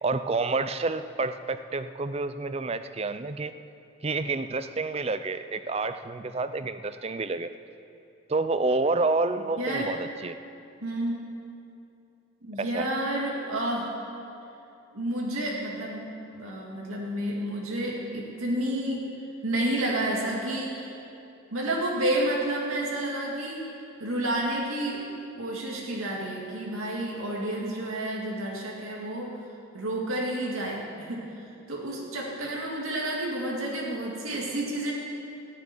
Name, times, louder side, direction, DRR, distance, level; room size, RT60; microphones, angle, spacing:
voice 1, 0.0-3.5 4.0-7.5 8.3-10.4 12.6-12.9, right 3 dB, 30° right, 11 dB, 0.5 m, -29 dB
voice 2, 9.6-9.9 10.8-11.2 12.4-13.9 14.9-19.1 19.4-20.9 21.5-23.6 24.0-25.0 25.4-29.3 29.7-34.9, right 1 dB, 85° right, -3 dB, 2.2 m, -30 dB
15.0 x 7.6 x 9.9 m, 2.7 s
head